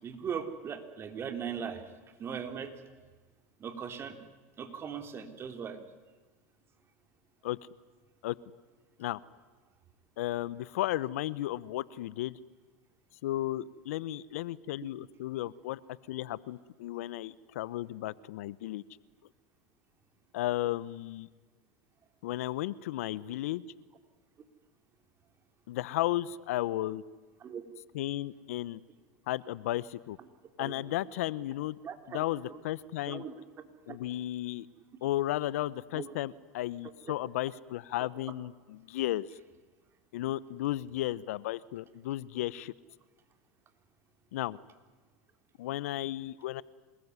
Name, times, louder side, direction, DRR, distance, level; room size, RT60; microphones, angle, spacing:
voice 1, 0.0-1.9 2.2-3.1 3.6-4.2 4.6-5.8 27.4-27.6 30.6-30.7 31.8-32.6 33.1-33.3 33.9-34.0 35.9-36.1 37.1-37.2, right 7 dB, 30° right, 7 dB, 3.6 m, -39 dB
voice 2, 10.2-12.4 13.2-15.8 16.1-18.8 20.3-21.3 22.2-23.6 25.7-27.0 27.9-28.8 29.3-30.2 30.6-31.8 32.1-33.2 33.9-34.7 35.0-39.3 40.1-42.7 44.3-44.6 45.6-46.6, left 15 dB, 75° left, 20 dB, 0.8 m, -34 dB
27.0 x 20.5 x 9.6 m, 1.3 s
hypercardioid pair, 100°, 8 cm